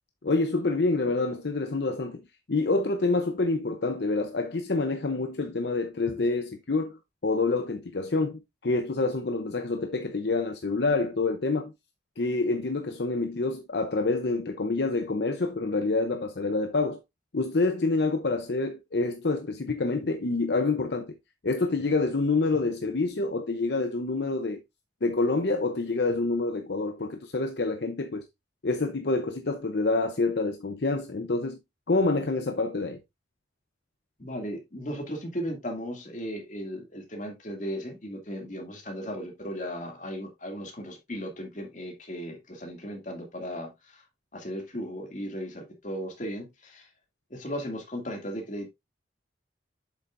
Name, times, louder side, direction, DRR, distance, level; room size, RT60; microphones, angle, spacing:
voice 1, 0.2-11.7 12.2-17.0 17.3-21.2 21.4-24.6 25.0-28.3 28.6-31.6 31.9-33.0, left 3 dB, 65° left, 0.7 m, -27 dB
voice 2, 34.2-44.0 44.3-46.9 47.3-48.7, equal, 40° left, 2.4 m, -36 dB
8.1 x 6.8 x 2.5 m
head